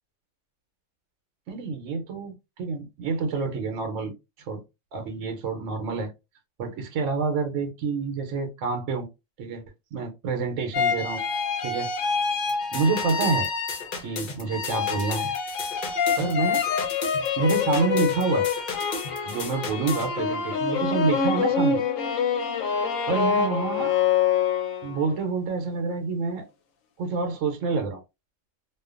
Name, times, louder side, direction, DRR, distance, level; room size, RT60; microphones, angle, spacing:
voice 1, 1.5-4.1 4.4-4.6 4.9-6.1 6.6-9.1 9.4-9.6 9.9-11.2 11.6-11.9 12.7-13.5 14.0-15.3 16.2-16.6 17.4-18.5 19.2-21.8 23.1-23.9 24.8-26.5 27.0-28.0, right 4 dB, 80° right, 1.0 m, -27 dB
sound 1, 10.7-14.1 14.5-25.1, left 6 dB, 85° left, 1.0 m, -26 dB
sound 2, 12.5-20.1, left 3 dB, 55° left, 0.6 m, -36 dB
2.4 x 2.2 x 2.4 m
omnidirectional pair, 1.3 m